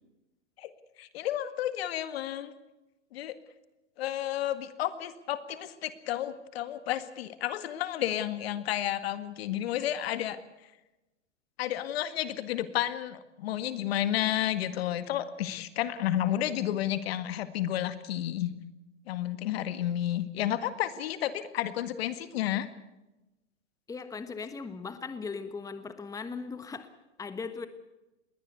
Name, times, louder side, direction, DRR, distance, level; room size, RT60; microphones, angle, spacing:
voice 1, 1.0-2.5 3.1-3.4 4.0-10.4 11.6-18.5 19.1-22.7, left 12 dB, 60° left, 12 dB, 1.9 m, -31 dB
voice 2, 23.9-26.9 27.2-27.7, left 4 dB, 10° left, 11 dB, 1.3 m, -38 dB
21.0 x 17.5 x 8.1 m, 1.0 s
hypercardioid pair, 120°, 35 cm